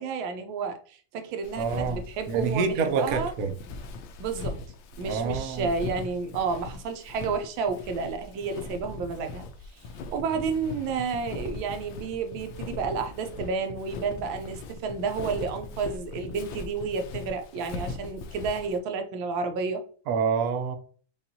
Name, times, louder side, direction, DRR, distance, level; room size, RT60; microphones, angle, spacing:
voice 1, 0.0-3.3 4.2-4.6 5.0-9.4 10.1-19.8, right 5 dB, 90° right, 1.4 m, -31 dB
Walk footsteps, 1.4-18.8, left 3 dB, 85° left, 1.4 m, -40 dB
voice 2, 1.6-2.0 2.3-3.5 5.0-5.7 20.1-20.8, right 5 dB, 70° right, 0.9 m, -27 dB
5.4 x 2.4 x 2.7 m
omnidirectional pair, 2.1 m